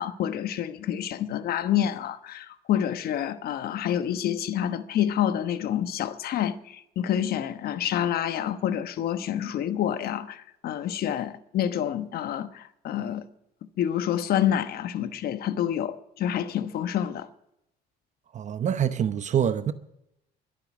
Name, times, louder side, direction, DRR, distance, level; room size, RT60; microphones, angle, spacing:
voice 1, 0.0-13.2 13.8-17.3, left 10 dB, 65° left, 1.1 m, -28 dB
voice 2, 18.3-19.7, right 9 dB, 45° right, 0.8 m, -25 dB
23.0 x 8.7 x 6.0 m
cardioid pair, 110°, 17 cm